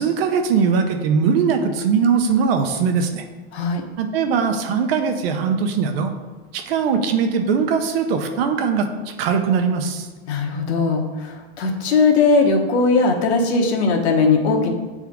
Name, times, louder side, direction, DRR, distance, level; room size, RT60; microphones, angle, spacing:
voice 1, 0.0-3.2 4.0-6.1 6.5-10.1, right 6 dB, 60° right, 6 dB, 0.8 m, -20 dB
voice 2, 3.5-3.8 10.3-14.7, left 4 dB, 75° left, 2 dB, 1.2 m, -19 dB
8.8 x 3.6 x 3.6 m, 1.3 s
supercardioid pair, 165°, 33 cm